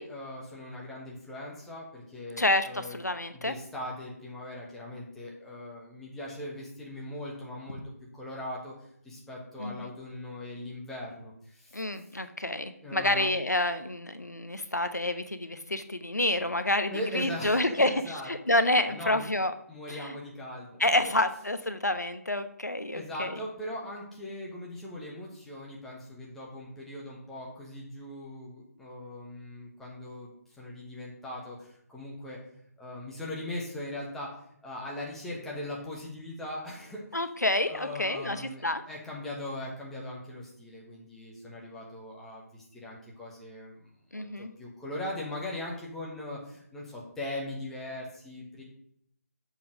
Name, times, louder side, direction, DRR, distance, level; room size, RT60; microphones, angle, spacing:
voice 1, 0.0-3.0 3.3-7.8 8.1-8.7 9.1-11.3 12.8-13.3 16.9-18.6 18.9-19.2 19.7-20.7 21.0-21.1 22.9-30.3 30.6-31.6 31.9-32.4 32.8-34.3 34.6-37.0 37.7-42.4 42.8-43.8 44.1-44.2 44.6-46.4 46.7-48.6, left 1 dB, 5° left, -4 dB, 1.4 m, -39 dB
voice 2, 2.4-3.5 9.6-9.9 11.7-19.5 19.9-20.1 20.8-23.4 37.1-38.8 44.1-44.5, left 1 dB, 85° left, 10 dB, 0.9 m, -28 dB
7.3 x 5.9 x 6.0 m, 0.70 s
figure-of-eight pair, 155°, 9 cm